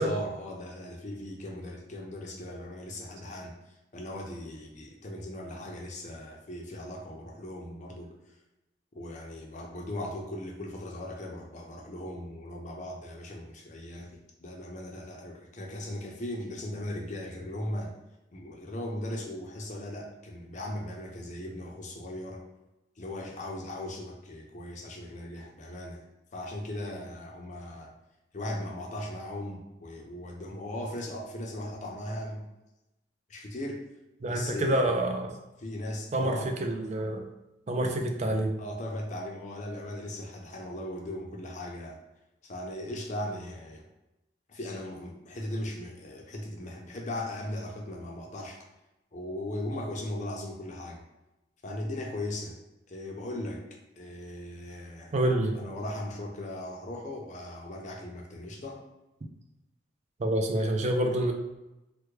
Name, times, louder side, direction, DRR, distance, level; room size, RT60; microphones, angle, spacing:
voice 1, 0.0-3.5 3.9-8.1 8.9-17.9 18.3-22.4 23.0-26.0 26.3-27.9 28.3-32.4 33.3-33.8 34.3-34.9 35.6-36.5 37.9-38.0 38.6-42.0 42.4-43.8 44.5-48.6 49.1-51.0 51.6-52.5 52.9-53.6 54.0-55.1 55.6-58.8, left 1 dB, 40° left, 0 dB, 0.6 m, -38 dB
voice 2, 34.2-35.3 36.1-37.2 37.7-38.6 55.1-55.6 60.2-61.3, right 1 dB, 40° right, 3 dB, 0.4 m, -27 dB
3.3 x 2.2 x 3.1 m, 0.96 s
head